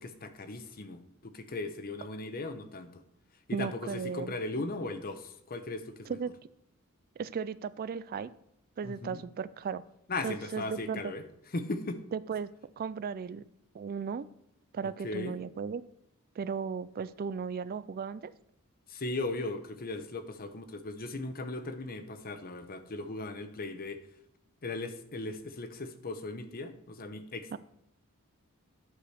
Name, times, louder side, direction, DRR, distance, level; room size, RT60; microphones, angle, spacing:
voice 1, 0.0-3.0 3.5-6.2 8.8-9.2 10.1-11.2 11.5-12.0 15.0-15.4 18.9-24.0 24.6-27.6, left 2 dB, 40° left, 9 dB, 0.9 m, -38 dB
voice 2, 3.5-4.3 6.1-6.3 7.2-8.3 8.8-9.8 10.2-11.1 12.1-12.5 12.8-13.4 13.7-14.3 14.7-15.8 16.4-18.3 27.5-27.6, right 6 dB, 40° right, 16 dB, 0.3 m, -35 dB
11.5 x 5.0 x 6.3 m, 0.77 s
head